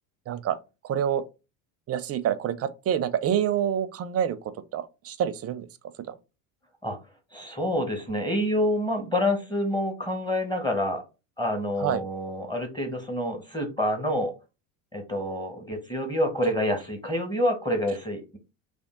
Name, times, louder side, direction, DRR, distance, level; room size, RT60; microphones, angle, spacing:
voice 1, 0.3-0.6 0.8-1.2 1.9-5.7 6.0-6.1 11.8-12.0, right 9 dB, 35° right, 0.5 m, -27 dB
voice 2, 7.3-11.0 11.4-14.3 14.9-18.4, left 1 dB, 10° left, 1.1 m, -27 dB
3.5 x 2.5 x 3.6 m
supercardioid pair, 90°, 42 cm